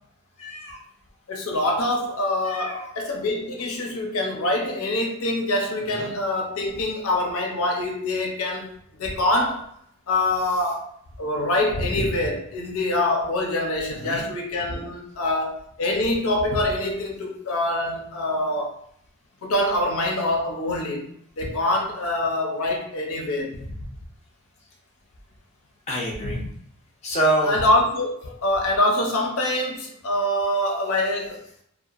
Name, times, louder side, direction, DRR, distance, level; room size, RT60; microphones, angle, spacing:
voice 1, 0.4-0.8 2.5-2.9 5.9-6.1 14.0-14.2 25.9-26.4 27.0-27.5, right 1 dB, 30° left, -3 dB, 0.6 m, -26 dB
voice 2, 1.3-8.7 9.0-9.7 10.1-10.9 11.2-18.8 19.4-21.1 21.4-23.7 26.2-26.5 27.4-31.5, left 1 dB, 75° left, 1 dB, 0.6 m, -25 dB
2.7 x 2.1 x 2.4 m, 0.66 s
head